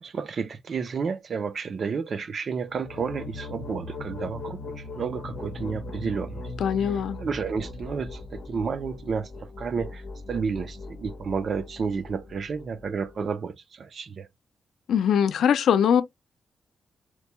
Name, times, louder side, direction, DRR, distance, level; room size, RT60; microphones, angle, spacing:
voice 1, 0.0-6.4 6.8-10.0 10.3-14.3, right 5 dB, 45° right, 0.4 m, -31 dB
sound 1, 2.7-13.3, left 2 dB, 55° left, 0.9 m, -39 dB
voice 2, 6.6-7.2 14.9-16.0, left 8 dB, 80° left, 0.4 m, -21 dB
4.3 x 2.2 x 2.9 m
wide cardioid pair, 155°, 0 cm